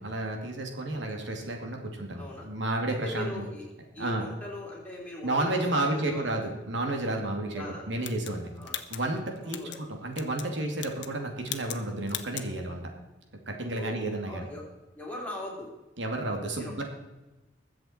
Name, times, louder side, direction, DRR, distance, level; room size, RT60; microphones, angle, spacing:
voice 1, 0.0-3.5 4.0-4.3 5.2-8.5 8.9-12.8 13.5-14.5 16.0-16.8, right 2 dB, 85° right, 2 dB, 2.4 m, -31 dB
voice 2, 2.1-2.5 2.9-3.6 3.9-6.3 7.5-7.9 8.6-8.8 9.4-9.8 13.7-14.6 14.9-15.7 16.6-16.7, left 1 dB, 10° left, -4 dB, 3.6 m, -40 dB
sound 1, 8.0-9.8 10.1-10.5 10.8-11.2 11.4-11.8 12.1-12.5, left 11 dB, 75° left, 1.0 m, -38 dB
21.5 x 7.6 x 4.4 m, 1.1 s
head